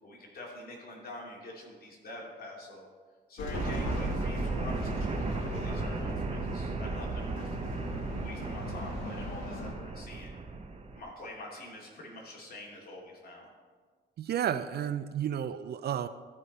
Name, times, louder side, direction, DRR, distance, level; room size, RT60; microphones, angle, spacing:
voice 1, 0.0-2.9 3.3-7.7 8.2-10.3 10.9-13.5, left 1 dB, 50° left, -2 dB, 2.7 m, -46 dB
sound 1, 3.4-9.7, left 3 dB, 85° left, 1.4 m, -40 dB
sound 2, 3.5-11.0, right 3 dB, 30° right, 0.9 m, -35 dB
voice 2, 14.2-16.1, right 9 dB, 55° right, 13 dB, 0.4 m, -32 dB
13.5 x 5.1 x 4.2 m, 1.5 s
cardioid pair, 90°, 20 cm